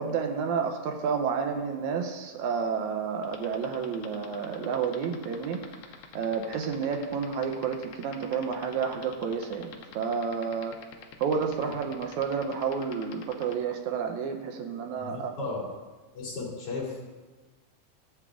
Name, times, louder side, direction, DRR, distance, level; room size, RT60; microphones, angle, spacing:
voice 1, 0.0-5.6 6.2-9.7 10.0-10.7 11.2-15.4, right 6 dB, 80° right, 5 dB, 2.1 m, -30 dB
sound 1, 3.2-13.5, left 10 dB, 85° left, 1.2 m, -45 dB
voice 2, 15.0-15.6 16.1-17.1, left 3 dB, 55° left, -5 dB, 3.1 m, -35 dB
13.5 x 8.2 x 2.5 m, 1.2 s
omnidirectional pair, 3.4 m